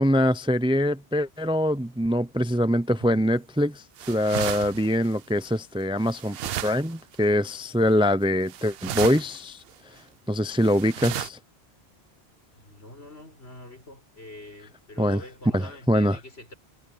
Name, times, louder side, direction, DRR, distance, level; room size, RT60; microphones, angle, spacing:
voice 1, 0.0-6.4 6.6-9.6 10.3-11.4 15.0-15.2 15.5-16.2, equal, 5° right, 0.4 m, -23 dB
sound 1, 3.0-3.3 4.0-5.4 6.0-7.2 7.4-7.5 8.5-9.4 9.7-9.8 10.6-11.3, right 11 dB, 70° right, 0.8 m, -34 dB
voice 2, 12.6-16.5, left 1 dB, 85° left, 6.7 m, -45 dB
omnidirectional pair, 1.0 m